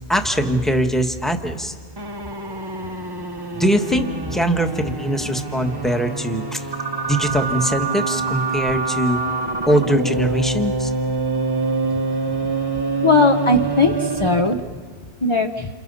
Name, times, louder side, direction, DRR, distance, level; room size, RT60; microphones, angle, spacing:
voice 1, 0.1-1.7 3.5-6.7 7.0-9.2 9.7-10.9, equal, ahead, 5 dB, 1.4 m, -21 dB
sound 1, 2.0-14.7, right 3 dB, 20° right, 0.9 m, -25 dB
voice 2, 13.0-14.6 15.2-15.7, left 3 dB, 25° left, 5 dB, 0.9 m, -18 dB
29.0 x 28.5 x 5.5 m, 1.5 s
omnidirectional pair, 1.4 m